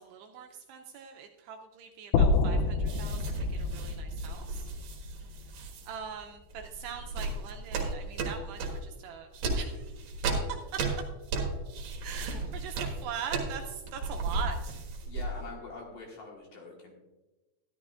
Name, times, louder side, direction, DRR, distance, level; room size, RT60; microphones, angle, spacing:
voice 1, 0.0-4.7 5.5-10.3 10.7-10.8 12.0-14.8, right 7 dB, 80° right, 3 dB, 2.5 m, -42 dB
sound 1, 2.1-6.3, left 3 dB, 80° left, 2.7 m, -29 dB
sound 2, 2.9-5.9 6.5-8.9 9.3-15.5, right 3 dB, 60° right, 2.9 m, -34 dB
voice 2, 15.1-16.9, left 3 dB, 60° left, -1 dB, 2.7 m, -44 dB
13.5 x 11.5 x 2.4 m, 1.1 s
omnidirectional pair, 5.2 m